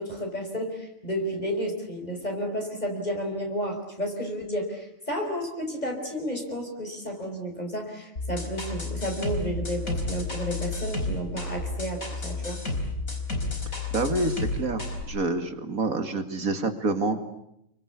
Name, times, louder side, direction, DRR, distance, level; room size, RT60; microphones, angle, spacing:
voice 1, 0.0-12.6, equal, 30° left, 2 dB, 5.5 m, -32 dB
sound 1, 8.2-15.0, left 3 dB, 85° left, 5.0 m, -31 dB
voice 2, 13.9-17.2, right 3 dB, 90° right, 7 dB, 2.9 m, -27 dB
29.0 x 24.0 x 8.5 m, 0.80 s
omnidirectional pair, 1.4 m